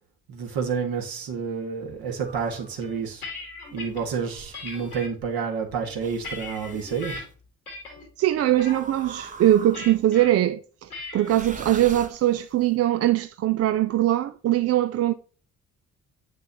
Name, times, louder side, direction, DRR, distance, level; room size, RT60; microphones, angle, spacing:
voice 1, 0.3-3.2 3.7-7.3, right 6 dB, 55° right, 1.9 m, -29 dB
sound 1, 2.2-2.8 3.8-5.0 6.0-7.3 8.6-10.1 11.2-12.6, right 3 dB, 20° right, 1.0 m, -42 dB
sound 2, 2.8-4.0 4.5-5.1 5.7-7.2 7.7-8.1 8.4-8.8 9.7-10.3 10.9-11.3, left 3 dB, 90° left, 1.7 m, -38 dB
voice 2, 8.2-15.1, right 13 dB, 35° right, 0.5 m, -22 dB
8.8 x 6.1 x 2.9 m
figure-of-eight pair, 45°, 43 cm